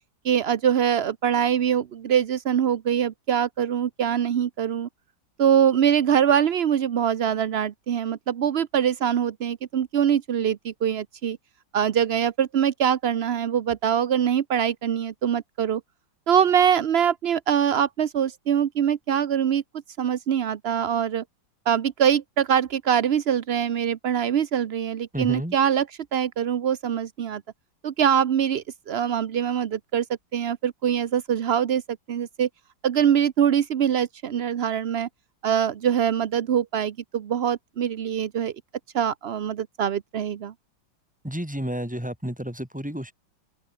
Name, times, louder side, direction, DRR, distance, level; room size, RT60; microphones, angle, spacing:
voice 1, 0.2-4.9 5.4-11.4 11.7-15.8 16.3-19.6 20.0-21.2 21.7-25.9 26.1-27.4 27.8-30.0 30.3-31.8 32.1-32.5 32.8-35.1 35.4-38.5 38.9-40.5, right 9 dB, 65° right, 0.6 m, -23 dB
voice 2, 25.1-25.5 41.2-43.1, equal, 5° right, 2.8 m, -31 dB
open air
omnidirectional pair, 2.1 m